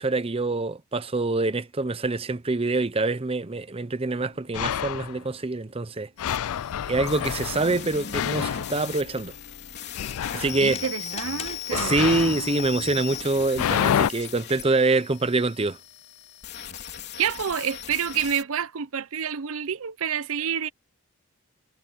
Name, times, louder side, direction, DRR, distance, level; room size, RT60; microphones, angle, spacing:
voice 1, 0.0-6.1 6.9-9.3 10.3-10.8 11.7-15.8, right 3 dB, 25° right, 0.7 m, -25 dB
sound 1, 4.1-4.2 4.5-5.2 6.2-9.5 9.9-10.7 11.7-14.1, left 9 dB, 70° left, 0.4 m, -29 dB
sound 2, 6.2-18.4, left 9 dB, 50° left, 3.6 m, -38 dB
sound 3, 8.9-13.6 15.2-15.3, left 5 dB, 30° left, 3.9 m, -43 dB
voice 2, 10.6-12.0 17.2-20.7, right 8 dB, 70° right, 0.6 m, -28 dB
head